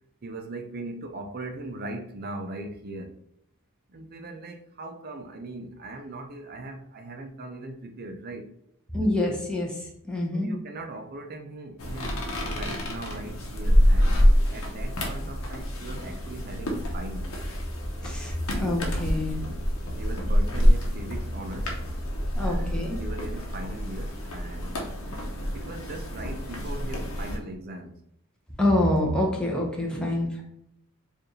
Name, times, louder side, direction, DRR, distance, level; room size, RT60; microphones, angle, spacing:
voice 1, 0.2-3.2 3.9-8.5 10.3-17.3 20.0-21.9 22.4-24.8 25.5-27.9 29.9-30.2, right 2 dB, 45° right, 0.5 m, -39 dB
voice 2, 8.9-10.5 18.0-19.4 22.3-23.0 28.6-30.4, left 1 dB, 5° left, 0.8 m, -26 dB
sound 1, 11.8-27.4, equal, 85° left, 0.8 m, -26 dB
4.6 x 2.5 x 3.1 m
head